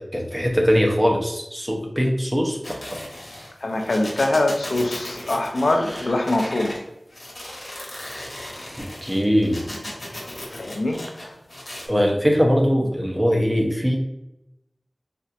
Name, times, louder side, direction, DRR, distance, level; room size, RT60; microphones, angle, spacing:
voice 1, 0.0-3.0 8.8-9.6 11.9-14.0, equal, 15° right, 1 dB, 0.7 m, -21 dB
sound 1, 2.6-6.8 7.1-11.8, left 1 dB, 60° left, 1.1 m, -36 dB
voice 2, 3.6-6.8 10.5-11.3, left 2 dB, 80° left, 4 dB, 0.4 m, -23 dB
4.2 x 2.5 x 2.5 m, 0.87 s
wide cardioid pair, 60°, 0 cm